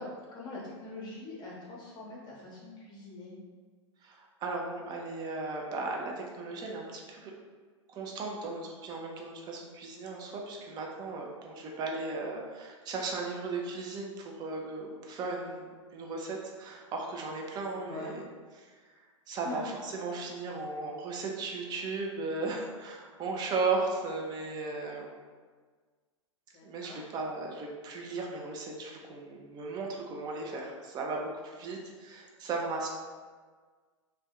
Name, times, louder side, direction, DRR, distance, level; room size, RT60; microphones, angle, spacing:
voice 1, 0.0-3.4 17.9-18.1 19.4-19.6 26.5-27.0, left 2 dB, 25° left, -4 dB, 0.8 m, -43 dB
voice 2, 4.0-7.3 7.9-18.2 18.6-25.1 26.6-32.9, right 3 dB, 25° right, 0 dB, 0.5 m, -36 dB
2.5 x 2.2 x 3.6 m, 1.5 s
figure-of-eight pair, 95°, 16 cm